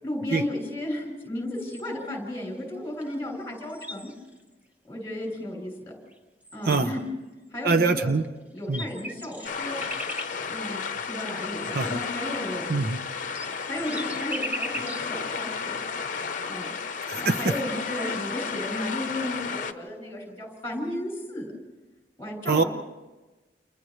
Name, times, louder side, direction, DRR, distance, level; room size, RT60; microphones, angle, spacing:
voice 1, 0.0-4.1 4.9-5.7 6.5-7.1 7.5-8.1 8.5-9.8 10.5-12.6 13.6-15.8 16.4-16.7 17.1-21.5 22.2-22.7, left 1 dB, 15° left, 1 dB, 6.6 m, -34 dB
sound 1, 1.6-2.1 3.0-3.2 3.4-4.5 5.2-5.3 6.1-6.2 6.4-7.1 8.2-8.3 8.6-10.4 11.5-15.1 15.6-15.7 16.9-17.0 17.2-18.9, equal, 10° right, 1.2 m, -39 dB
voice 2, 7.6-8.2 8.7-8.8 11.7-12.0 12.7-13.1 17.1-17.4 22.5-22.6, right 3 dB, 60° right, 9 dB, 0.8 m, -23 dB
sound 2, 9.4-19.7, left 5 dB, 50° left, 0.9 m, -33 dB
29.5 x 29.0 x 3.2 m, 1.1 s
head